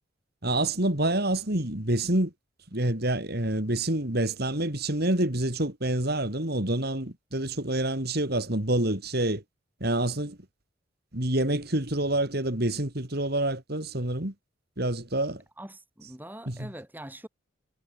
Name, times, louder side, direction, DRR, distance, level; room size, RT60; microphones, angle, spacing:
voice 1, 0.4-2.3 2.7-9.4 9.8-10.4 11.1-14.3 14.8-15.4 16.0-16.1 16.5-16.7, right 1 dB, 50° right, 3.5 m, -27 dB
voice 2, 15.6-17.3, right 1 dB, 10° right, 7.4 m, -43 dB
head